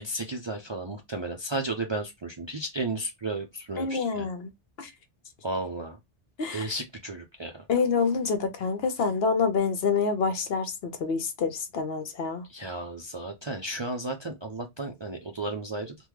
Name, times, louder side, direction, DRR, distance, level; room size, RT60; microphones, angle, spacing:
voice 1, 0.0-4.3 5.4-6.0 6.5-7.7 12.5-16.0, right 2 dB, 50° right, 0.3 m, -33 dB
voice 2, 3.8-4.5 4.8-4.9 6.4-6.7 7.7-12.4, left 5 dB, 65° left, 0.9 m, -27 dB
3.5 x 2.2 x 3.0 m
omnidirectional pair, 1.2 m